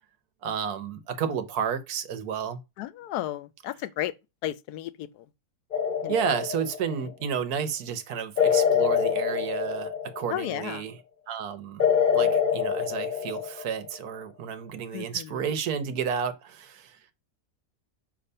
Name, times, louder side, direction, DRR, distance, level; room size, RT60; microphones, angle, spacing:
voice 1, 0.4-2.6 6.1-9.9 10.2-11.0 11.3-11.9 12.1-17.0, right 7 dB, 75° right, 1.4 m, -31 dB
voice 2, 2.8-4.1 4.4-5.1 6.0-6.1 10.3-10.8 14.9-15.1, left 13 dB, 85° left, 1.1 m, -33 dB
sound 1, 5.7-7.1 8.4-10.5 11.8-14.0, left 7 dB, 45° left, 0.7 m, -25 dB
6.7 x 3.1 x 5.4 m
omnidirectional pair, 1.6 m